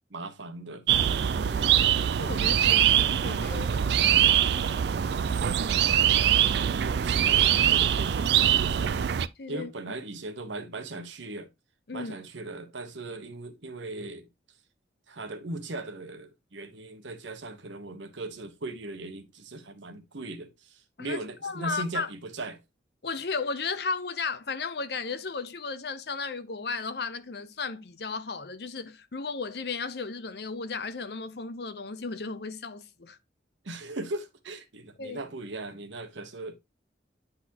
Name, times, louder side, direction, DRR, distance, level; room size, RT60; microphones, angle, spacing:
voice 1, 0.1-0.9 6.8-9.0 9.5-11.5 11.9-14.3 15.1-22.6 33.6-36.6, right 2 dB, 80° right, 1.1 m, -38 dB
sound 1, 0.9-9.3, right 10 dB, 60° right, 0.3 m, -23 dB
voice 2, 1.3-4.9 9.4-9.7 11.9-12.1 21.0-22.1 23.0-33.2 35.0-35.2, left 4 dB, 60° left, 0.7 m, -35 dB
9.7 x 4.0 x 2.9 m
head